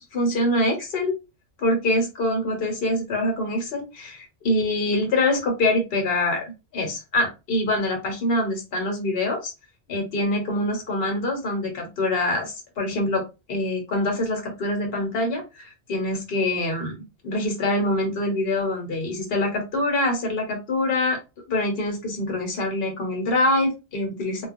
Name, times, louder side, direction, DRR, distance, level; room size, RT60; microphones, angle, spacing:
voice 1, 0.1-1.2 1.6-9.5 9.9-13.2 13.5-16.9 17.2-21.2 21.5-24.5, left 1 dB, 50° left, 2 dB, 1.1 m, -25 dB
2.3 x 2.2 x 2.6 m, 0.27 s
omnidirectional pair, 1.4 m